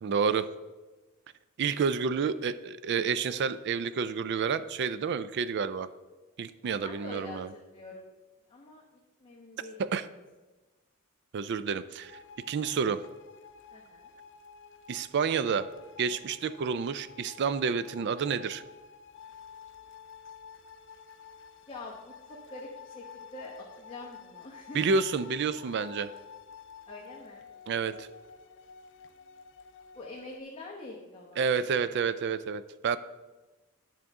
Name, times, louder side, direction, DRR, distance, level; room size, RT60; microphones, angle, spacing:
voice 1, 0.0-0.5 1.6-5.9 6.4-7.5 9.8-10.1 11.3-12.1 12.5-13.0 14.9-15.7 16.0-18.6 24.7-26.1 27.7-28.1 31.4-33.0, right 5 dB, 50° right, 14 dB, 0.3 m, -29 dB
voice 2, 6.8-8.1 8.5-8.8 9.2-9.8 13.7-14.1 21.7-25.0 26.9-27.5 29.9-31.9, left 2 dB, 25° left, -3 dB, 1.0 m, -45 dB
sound 1, 12.0-30.4, left 6 dB, 55° left, 0.5 m, -51 dB
10.5 x 6.6 x 3.6 m, 1.2 s
head